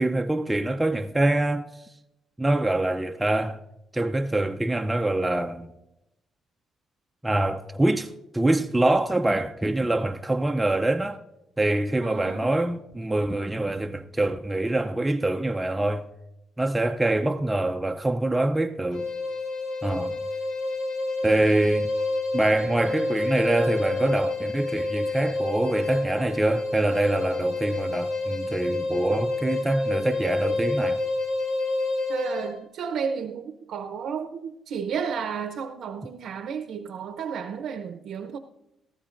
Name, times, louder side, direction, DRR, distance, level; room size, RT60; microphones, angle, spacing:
voice 1, 0.0-1.7 2.4-3.6 3.9-5.7 7.2-11.2 11.6-16.0 16.6-19.1 19.8-20.2 21.2-21.9 22.3-31.0, right 2 dB, 10° right, 0.5 m, -25 dB
voice 2, 12.0-12.5 32.1-38.4, right 6 dB, 75° right, 0.7 m, -32 dB
sound 1, 18.9-32.6, left 2 dB, 85° left, 1.9 m, -28 dB
18.0 x 14.0 x 2.5 m
cardioid pair, 90°, 0 cm